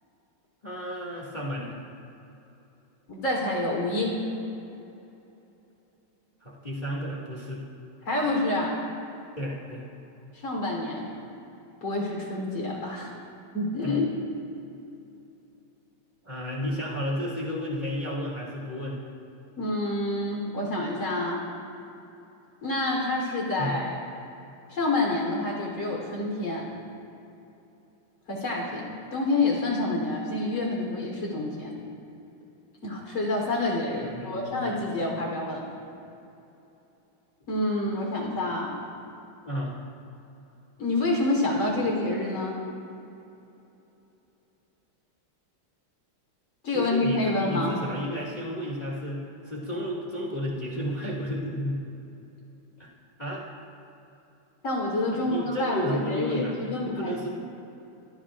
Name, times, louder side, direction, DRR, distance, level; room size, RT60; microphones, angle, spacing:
voice 1, 0.6-1.8 6.4-7.6 9.4-9.8 13.8-14.0 16.2-19.0 23.6-23.8 34.0-34.7 39.4-39.7 46.7-51.8 52.8-52.9 53.2-53.5 55.1-57.3, equal, 20° left, -4 dB, 2.2 m, -32 dB
voice 2, 3.1-4.2 8.0-8.8 10.4-11.1 11.8-13.2 13.5-14.1 19.6-21.4 22.6-24.0 24.7-26.7 28.3-31.7 32.8-35.7 37.5-38.8 40.8-42.6 46.6-47.7 54.6-57.1, left 2 dB, 70° left, -2 dB, 4.4 m, -28 dB
26.0 x 18.5 x 2.5 m, 2.9 s
omnidirectional pair, 2.3 m